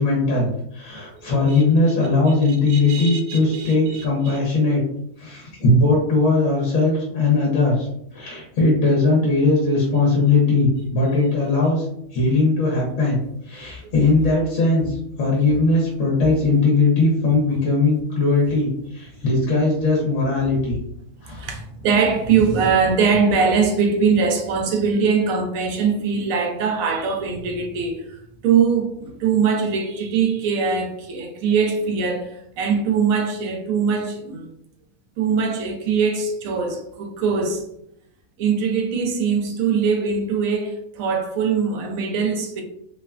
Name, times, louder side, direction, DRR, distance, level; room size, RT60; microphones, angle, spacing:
voice 1, 0.0-4.8 5.2-7.9 8.1-11.8 12.1-20.8 21.2-21.5, left 3 dB, 65° left, 1.0 m, -19 dB
voice 2, 1.1-1.6 2.3-4.4 13.8-13.9 15.4-15.5 21.3-32.3 32.6-34.6 35.2-37.6 38.4-42.6, right 5 dB, 75° right, 1.0 m, -22 dB
3.0 x 2.1 x 2.3 m
omnidirectional pair, 1.5 m